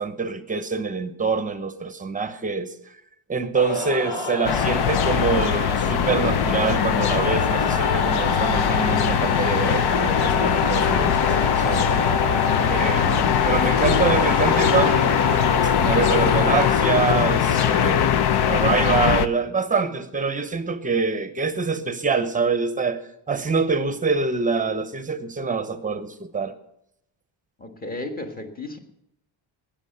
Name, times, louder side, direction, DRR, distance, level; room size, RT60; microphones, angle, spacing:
voice 1, 0.0-2.7 3.3-11.8 12.7-15.1 15.8-23.0 23.3-26.5, right 5 dB, 15° right, 10 dB, 0.9 m, -25 dB
sound 1, 3.5-17.7, left 4 dB, 85° left, 3.1 m, -26 dB
sound 2, 4.4-19.3, left 9 dB, 50° left, 0.7 m, -21 dB
voice 2, 27.6-28.8, left 2 dB, 20° left, 5 dB, 1.6 m, -33 dB
14.5 x 10.0 x 6.7 m, 0.78 s
cardioid pair, 165°, 48 cm